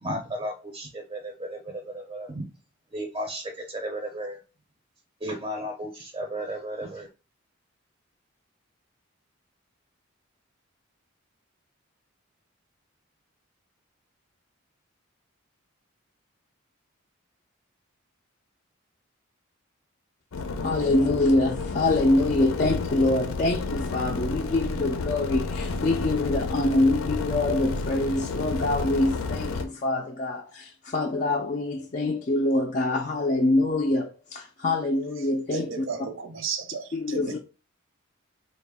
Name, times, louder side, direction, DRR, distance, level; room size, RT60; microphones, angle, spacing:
voice 1, 0.0-2.4 2.9-4.4 5.2-7.1, right 1 dB, 25° right, 0.5 m, -34 dB
sound 1, 20.3-29.7, left 3 dB, 90° left, 0.5 m, -31 dB
voice 2, 20.6-35.9 36.9-37.4, left 2 dB, 35° left, 0.4 m, -25 dB
voice 3, 35.5-37.4, right 5 dB, 65° right, 0.6 m, -34 dB
4.1 x 2.3 x 3.5 m
head